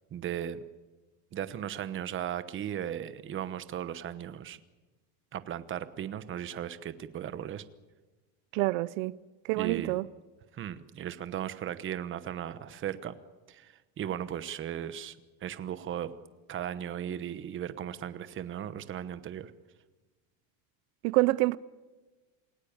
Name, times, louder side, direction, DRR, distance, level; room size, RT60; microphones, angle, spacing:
voice 1, 0.1-0.6 1.3-4.6 5.3-7.6 9.5-10.0 10.5-13.2 13.5-15.2 15.4-16.1 16.5-19.5, right 10 dB, 30° right, 1.1 m, -36 dB
voice 2, 8.5-9.2 9.4-10.1 21.0-21.6, right 21 dB, 80° right, 0.7 m, -27 dB
28.0 x 17.0 x 8.8 m
cardioid pair, 160°, 41 cm